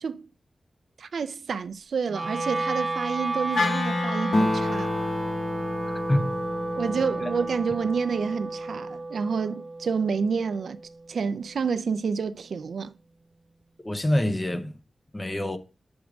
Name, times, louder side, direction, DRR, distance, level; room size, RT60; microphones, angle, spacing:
voice 1, 1.0-4.9 6.8-10.8 11.1-12.9, right 5 dB, 80° right, 0.4 m, -29 dB
Wind instrument woodwind instrument, 2.1-12.3, right 2 dB, 30° right, 0.7 m, -33 dB
Wind instrument woodwind instrument 2, 3.5-7.8, left 3 dB, 75° left, 1.0 m, -31 dB
Acoustic guitar, 4.3-8.1, left 2 dB, 40° left, 0.9 m, -31 dB
voice 2, 5.9-6.3 13.8-14.8 15.1-15.6, left 1 dB, 20° left, 0.6 m, -26 dB
6.3 x 3.5 x 6.0 m
wide cardioid pair, 140°, 0 cm